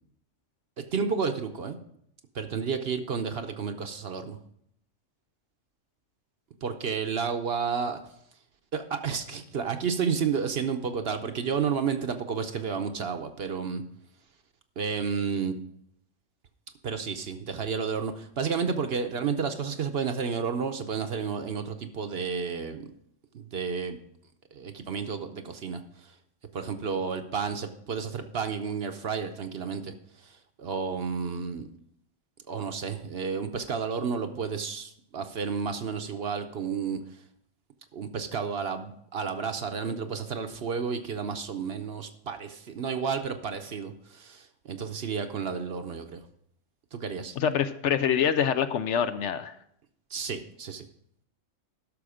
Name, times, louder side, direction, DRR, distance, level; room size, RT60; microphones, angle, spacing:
voice 1, 0.8-1.8 2.3-4.4 6.6-8.0 8.7-13.8 14.8-15.5 16.8-22.9 23.3-24.0 24.5-25.8 26.5-29.9 30.6-31.7 32.5-37.0 37.9-46.2 46.9-47.4 50.1-50.8, right 6 dB, 55° right, 7 dB, 0.9 m, -31 dB
voice 2, 47.4-49.5, left 8 dB, 70° left, 11 dB, 0.9 m, -25 dB
12.0 x 6.3 x 4.9 m, 0.72 s
omnidirectional pair, 1.4 m